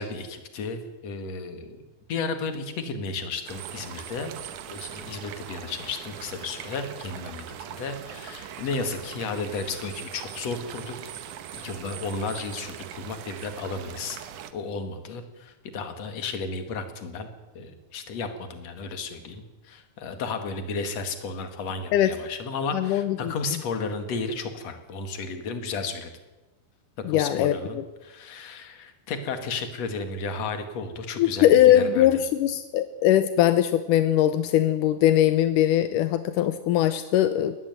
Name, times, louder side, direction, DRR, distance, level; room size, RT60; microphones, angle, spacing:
voice 1, 0.0-1.8 2.1-4.3 4.7-11.1 11.5-17.3 17.5-26.1 27.1-32.2, left 4 dB, 50° left, 8 dB, 2.7 m, -33 dB
sound 1, 3.5-14.5, right 10 dB, 65° right, 2.2 m, -41 dB
voice 2, 22.7-23.3 27.1-27.8 31.2-37.6, left 12 dB, 80° left, 11 dB, 1.9 m, -21 dB
19.5 x 15.0 x 9.2 m, 1.1 s
omnidirectional pair, 4.6 m